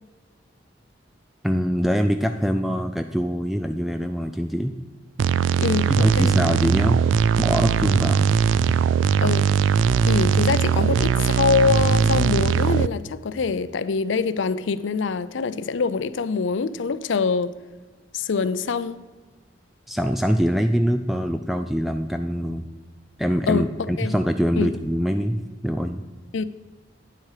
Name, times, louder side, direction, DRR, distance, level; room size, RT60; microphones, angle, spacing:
voice 1, 1.4-4.8 5.9-7.1 7.4-8.3 19.9-22.7 23.2-26.1, equal, ahead, 0.3 m, -24 dB
sound 1, 5.2-12.9, right 7 dB, 85° right, 0.3 m, -20 dB
voice 2, 5.6-6.3 9.2-9.5 10.1-17.5 18.1-19.0 23.5-23.7 24.0-24.1 24.6-24.7 26.3-26.4, left 5 dB, 85° left, 0.5 m, -24 dB
9.5 x 7.4 x 4.8 m
head